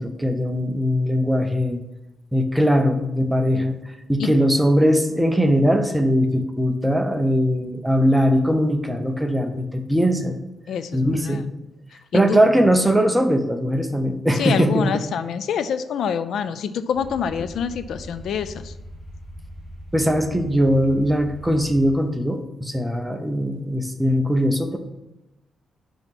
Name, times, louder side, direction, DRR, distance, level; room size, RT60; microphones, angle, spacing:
voice 1, 0.0-1.8 2.3-3.8 4.1-10.4 10.9-11.5 12.1-15.0 19.9-24.8, equal, 5° right, 5 dB, 0.8 m, -20 dB
voice 2, 10.7-11.4 12.1-12.4 14.3-18.7, left 7 dB, 75° left, 12 dB, 0.4 m, -26 dB
sound 1, 16.9-21.9, equal, 50° left, 1.9 m, -40 dB
5.7 x 5.4 x 6.1 m, 0.94 s
cardioid pair, 130°, 0 cm